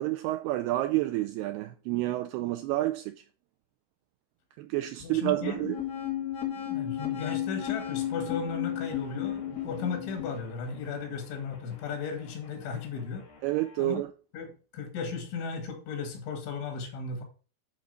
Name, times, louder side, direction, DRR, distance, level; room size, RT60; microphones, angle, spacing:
voice 1, 0.0-3.2 4.6-5.8 13.4-14.1, right 16 dB, 85° right, 2.3 m, -29 dB
voice 2, 5.0-5.6 6.6-13.2 13.8-14.0 14.3-17.2, left 5 dB, 90° left, 4.5 m, -36 dB
sound 1, 5.2-10.4, left 11 dB, 45° left, 2.8 m, -33 dB
sound 2, 7.8-13.9, left 3 dB, 60° left, 5.4 m, -53 dB
10.5 x 4.0 x 6.6 m
omnidirectional pair, 5.2 m